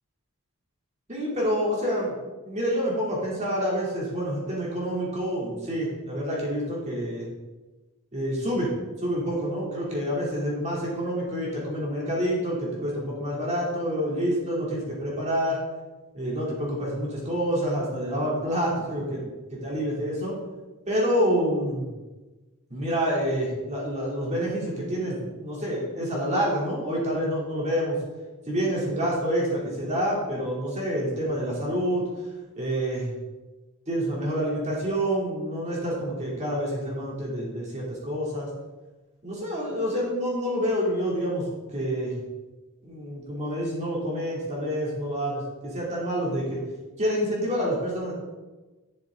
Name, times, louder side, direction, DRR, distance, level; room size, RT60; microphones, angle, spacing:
voice 1, 1.1-2.2 2.4-7.3 8.1-8.7 9.0-15.6 16.1-19.2 19.5-20.4 20.9-21.9 22.7-28.0 28.5-32.0 32.6-33.1 33.9-38.5 39.2-41.4 41.7-42.1 42.8-46.6 47.0-48.1, equal, 30° right, -4 dB, 3.2 m, -27 dB
11.0 x 7.0 x 3.9 m, 1.2 s
head